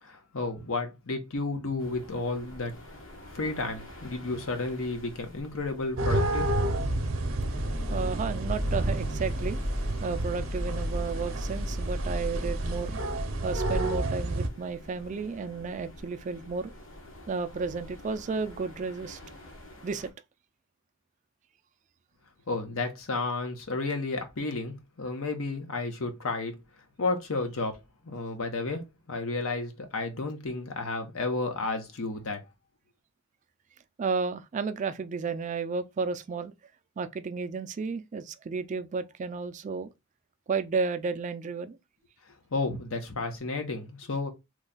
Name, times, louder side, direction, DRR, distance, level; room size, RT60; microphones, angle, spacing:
voice 1, 0.0-2.7 3.3-6.5 22.5-26.5 27.0-27.8 28.0-32.4 42.5-44.3, left 3 dB, 85° left, 0.9 m, -32 dB
sound 1, 1.8-20.1, left 1 dB, 65° left, 1.1 m, -48 dB
sound 2, 6.0-14.5, right 1 dB, 75° right, 0.6 m, -31 dB
sound 3, 7.3-13.8, equal, 35° left, 0.7 m, -34 dB
voice 2, 7.9-9.6 10.0-13.0 13.4-16.7 17.3-19.2 19.8-20.1 34.0-36.5 37.0-39.9 40.5-41.8, right 4 dB, 35° right, 0.3 m, -32 dB
3.1 x 2.3 x 3.8 m
head